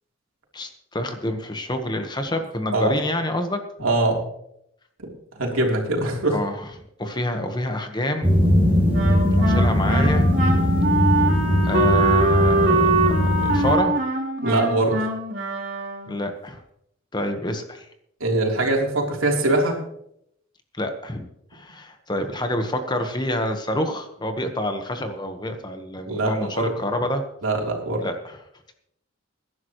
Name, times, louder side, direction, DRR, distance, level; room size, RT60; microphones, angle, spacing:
voice 1, 0.5-3.6 6.3-6.7 7.0-8.4 9.4-10.3 11.6-13.9 16.1-16.6 17.1-17.9 20.8-21.3 21.5-27.2 28.0-28.4, left 1 dB, 20° left, 6 dB, 1.2 m, -27 dB
voice 2, 3.8-4.2 5.3-6.4 14.4-15.0 18.2-19.8 26.0-26.7 27.4-28.0, right 2 dB, 85° right, 0 dB, 3.4 m, -22 dB
sound 1, 8.2-13.7, left 1 dB, 10° right, 3.3 m, -20 dB
Wind instrument woodwind instrument, 8.9-16.2, right 2 dB, 60° right, 3.6 m, -23 dB
21.0 x 11.0 x 3.1 m, 0.74 s
head